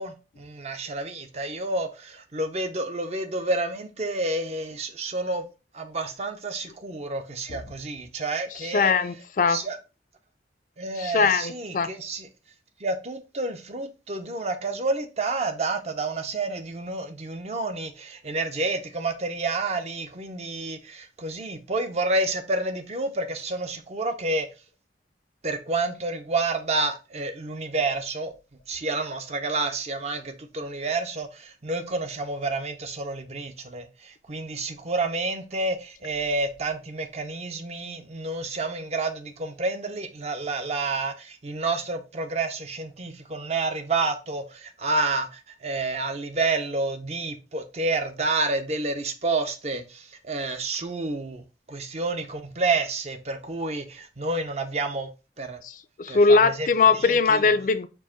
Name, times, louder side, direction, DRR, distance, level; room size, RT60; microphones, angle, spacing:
voice 1, 0.0-5.5 5.7-8.9 9.5-9.8 10.8-12.3 12.8-24.5 25.4-28.3 28.7-55.1 55.4-55.6 56.1-56.7 57.0-57.4, right 3 dB, 35° right, 0.6 m, -29 dB
voice 2, 8.7-9.6 11.0-11.9 55.6-57.9, left 4 dB, 45° left, 0.4 m, -21 dB
4.6 x 2.5 x 4.3 m
head